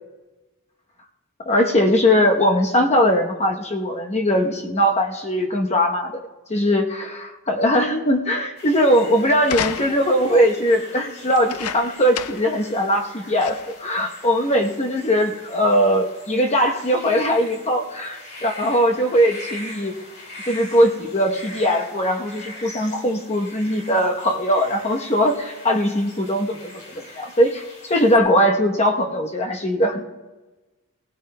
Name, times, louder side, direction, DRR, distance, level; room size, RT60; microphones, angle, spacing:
voice 1, 1.4-19.9 20.5-30.1, equal, 30° left, 3 dB, 0.9 m, -20 dB
sound 1, 8.6-28.2, left 1 dB, 50° left, 2.3 m, -42 dB
sound 2, 9.4-10.2 11.3-12.6 12.9-13.0 13.4-13.8 14.6-14.7, left 8 dB, 80° left, 0.5 m, -31 dB
19.5 x 16.0 x 2.2 m, 1.2 s
head